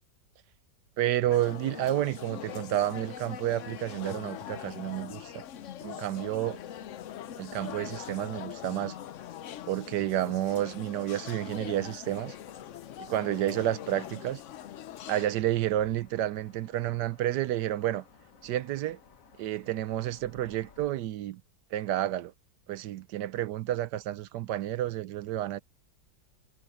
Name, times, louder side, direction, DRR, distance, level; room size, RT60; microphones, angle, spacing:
voice 1, 1.0-5.3 5.8-6.6 7.4-8.9 9.7-12.3 13.1-14.4 15.1-18.0 18.4-19.0 19.4-21.4 21.7-22.3 22.7-25.6, right 13 dB, 70° right, 1.1 m, -30 dB
sound 1, 1.3-15.3, left 10 dB, 75° left, 0.7 m, -42 dB
sound 2, 12.1-20.9, left 6 dB, 50° left, 1.6 m, -58 dB
omnidirectional pair, 2.1 m